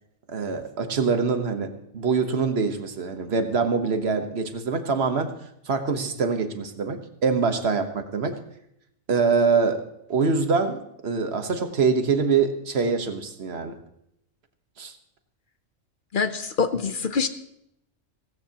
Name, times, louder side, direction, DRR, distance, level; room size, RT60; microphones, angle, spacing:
voice 1, 0.3-5.3 5.6-8.4 9.1-9.8 10.1-13.8 14.8-14.9, right 5 dB, 50° right, 7 dB, 1.3 m, -24 dB
voice 2, 16.1-17.3, left 5 dB, 50° left, 10 dB, 0.7 m, -25 dB
16.5 x 16.0 x 2.9 m, 0.76 s
omnidirectional pair, 1.4 m